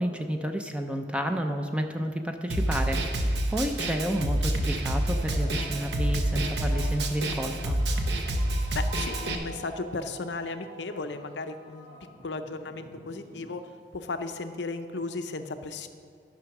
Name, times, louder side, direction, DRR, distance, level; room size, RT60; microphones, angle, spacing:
voice 1, 0.0-7.8, equal, 5° right, 5 dB, 0.5 m, -31 dB
Snare drum, 2.5-9.3, right 1 dB, 70° right, 1.0 m, -28 dB
sound 1, 5.0-13.9, right 2 dB, 40° right, 2.8 m, -47 dB
voice 2, 8.7-11.9 12.2-13.6 13.9-15.9, left 3 dB, 85° left, 8 dB, 0.7 m, -35 dB
11.5 x 6.2 x 5.9 m, 2.2 s
head